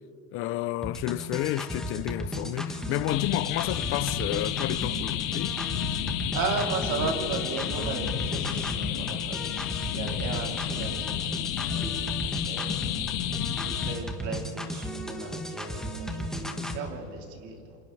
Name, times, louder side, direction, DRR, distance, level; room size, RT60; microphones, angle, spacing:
voice 1, 0.3-5.6, left 15 dB, 35° left, 0.5 m, -31 dB
sound 1, 0.8-16.8, equal, ahead, 1.6 m, -35 dB
sound 2, 3.1-14.0, left 11 dB, 65° left, 2.1 m, -31 dB
voice 2, 6.3-12.8 13.5-17.8, right 4 dB, 45° right, 3.3 m, -36 dB
28.5 x 27.5 x 3.4 m
supercardioid pair, 140°, 40 cm